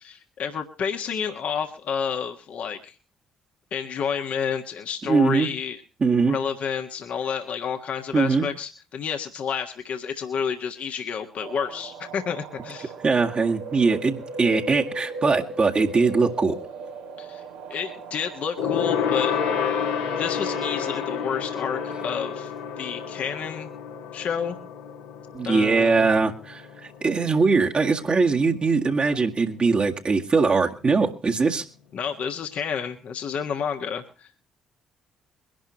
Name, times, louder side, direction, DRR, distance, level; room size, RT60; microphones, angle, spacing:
voice 1, 0.0-2.9 3.7-5.8 6.3-12.9 17.2-17.4 17.7-19.3 20.2-22.5 22.8-23.7 24.1-24.6 25.4-26.1 31.9-34.4, left 7 dB, 55° left, 4 dB, 1.5 m, -30 dB
voice 2, 5.0-5.5 6.0-6.4 8.1-8.5 13.0-16.6 25.3-31.6, right 4 dB, 35° right, 1 dB, 1.9 m, -21 dB
sound 1, 11.4-22.7, right 2 dB, 75° right, 2.0 m, -39 dB
Gong, 18.6-28.3 28.6-28.9 29.2-29.3, left 7 dB, 75° left, 1.9 m, -30 dB
23.0 x 11.5 x 3.0 m, 0.35 s
figure-of-eight pair, 45°, 3 cm